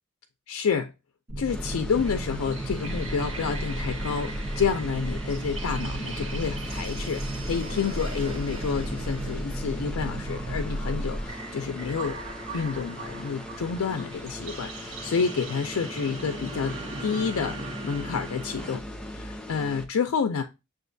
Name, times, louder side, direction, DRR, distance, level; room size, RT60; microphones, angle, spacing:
voice 1, 0.5-0.9 1.4-12.2 12.5-18.8 19.1-20.4, left 6 dB, 85° left, 0.4 m, -29 dB
sound 1, 1.3-11.3, right 1 dB, 40° right, 0.8 m, -34 dB
sound 2, 1.5-19.8, equal, 5° left, 0.4 m, -39 dB
sound 3, 1.9-18.8, right 2 dB, 70° right, 1.0 m, -40 dB
7.0 x 2.5 x 2.6 m
head